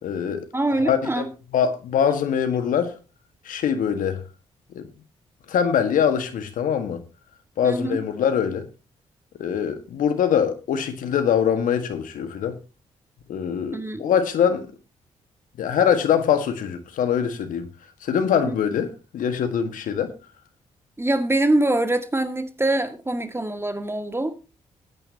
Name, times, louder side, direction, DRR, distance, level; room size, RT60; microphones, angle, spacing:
voice 1, 0.0-0.5 0.8-2.9 3.4-4.2 4.7-4.9 5.5-7.0 7.6-8.7 9.4-12.6 13.3-14.7 15.6-17.7 18.0-20.1, left 8 dB, 75° left, 1.6 m, -23 dB
voice 2, 0.5-1.3 7.6-8.0 13.7-14.0 21.0-24.4, right 1 dB, 15° right, 2.0 m, -24 dB
18.0 x 9.2 x 2.8 m
hypercardioid pair, 45°, 14 cm